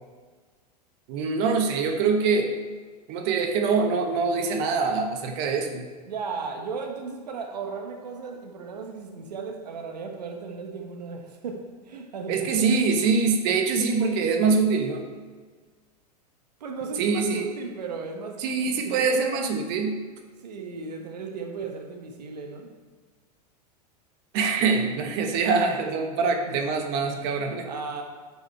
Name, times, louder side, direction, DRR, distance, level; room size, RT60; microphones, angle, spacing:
voice 1, 1.1-2.6 3.1-5.9 12.3-15.0 17.0-17.5 18.4-20.0 24.3-27.7, right 4 dB, 50° right, 4 dB, 1.2 m, -24 dB
voice 2, 6.1-12.5 16.6-19.2 20.4-22.8 26.5-26.6 27.0-27.2 27.6-28.0, right 4 dB, 75° right, 2 dB, 1.3 m, -36 dB
9.3 x 5.7 x 4.4 m, 1.5 s
hypercardioid pair, 100°, 21 cm